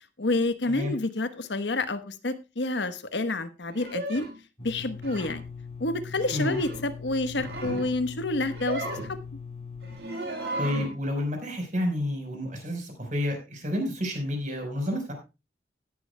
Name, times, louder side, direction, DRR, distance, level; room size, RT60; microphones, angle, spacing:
voice 1, 0.2-4.3 4.6-5.4 5.8-9.2, left 2 dB, 80° left, 12 dB, 1.1 m, -29 dB
sound 1, 3.7-4.3 5.0-5.4 6.1-6.8 7.2-7.9 8.4-9.1 9.8-11.0, right 2 dB, 65° right, 4.5 m, -35 dB
sound 2, 4.6-10.0, left 5 dB, 35° left, 1.8 m, -41 dB
voice 2, 10.6-15.1, left 1 dB, 45° right, 4 dB, 4.4 m, -30 dB
16.5 x 11.0 x 2.2 m, 0.27 s
head